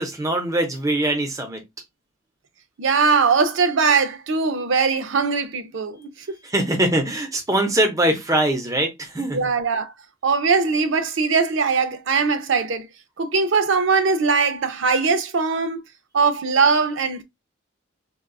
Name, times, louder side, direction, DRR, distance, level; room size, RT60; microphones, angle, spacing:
voice 1, 0.0-1.6 6.4-9.4, right 1 dB, 15° right, 0.7 m, -22 dB
voice 2, 2.8-6.4 9.3-9.9 10.2-12.9 13.2-15.8 16.1-17.2, right 5 dB, 75° right, 0.6 m, -20 dB
3.8 x 2.3 x 2.3 m
head